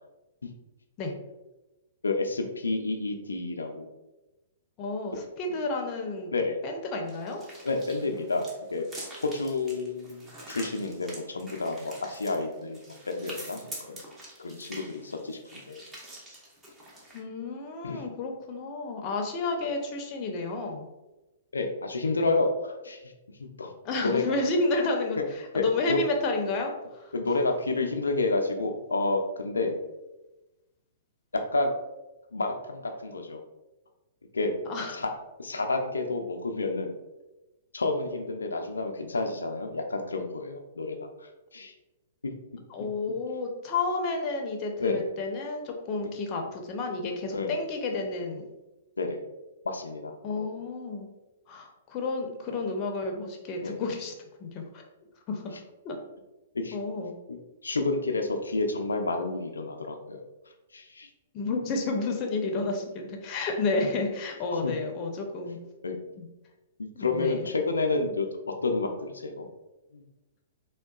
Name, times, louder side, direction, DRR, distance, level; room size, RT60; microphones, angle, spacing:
voice 1, 2.0-3.9 6.3-6.6 7.6-8.8 9.2-12.8 13.1-14.0 14.4-15.8 17.8-18.0 19.6-19.7 21.5-23.1 23.6-23.7 24.0-24.2 25.2-25.3 25.5-26.0 27.1-29.8 31.5-31.7 32.3-33.4 34.3-34.5 34.9-35.1 35.4-36.9 37.7-41.1 41.5-41.7 44.8-45.0 47.3-47.5 49.0-49.2 49.6-50.5 53.6-53.8 56.5-56.8 57.3-57.4 57.6-60.2 60.7-61.1 64.6-64.7 65.8-66.0 66.8-69.5 69.9-70.0, left 3 dB, 85° left, 4 dB, 0.4 m, -30 dB
voice 2, 4.8-6.3 6.6-7.4 17.1-20.9 23.8-27.1 34.7-35.0 42.7-48.5 50.2-51.1 51.5-54.1 54.4-54.6 55.3-55.6 55.8-56.0 56.7-57.2 61.3-65.6 66.2-66.3 66.9-67.5, left 3 dB, 35° left, 2 dB, 0.6 m, -31 dB
sound 1, 7.1-17.2, right 1 dB, 15° right, 0.8 m, -46 dB
3.6 x 2.2 x 2.3 m, 1.0 s
hypercardioid pair, 120°, 0 cm